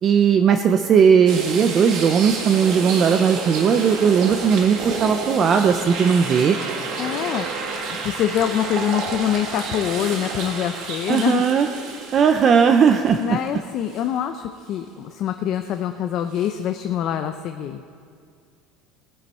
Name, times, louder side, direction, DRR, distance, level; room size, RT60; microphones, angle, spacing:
voice 1, 0.0-6.6 11.1-11.7 12.1-13.4, right 7 dB, 25° right, 7 dB, 0.4 m, -17 dB
sound 1, 1.3-13.5 13.9-14.0 16.3-16.5, right 4 dB, 45° right, 1.8 m, -30 dB
voice 2, 7.0-7.5 7.8-11.4 13.2-17.8, left 10 dB, 35° left, 7 dB, 0.5 m, -25 dB
19.0 x 10.5 x 4.3 m, 2.2 s
cardioid pair, 175°, 0 cm